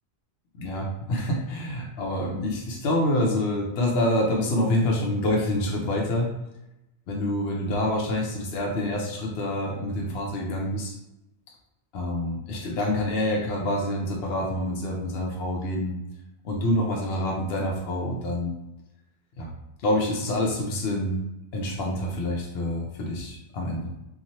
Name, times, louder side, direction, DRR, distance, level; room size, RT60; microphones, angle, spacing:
voice 1, 0.6-6.3 7.1-10.9 11.9-16.0 16.4-18.5 19.4-19.5 19.8-21.2 21.5-23.9, left 1 dB, 70° left, -1 dB, 0.8 m, -27 dB
2.9 x 2.4 x 2.6 m, 0.91 s
omnidirectional pair, 1.1 m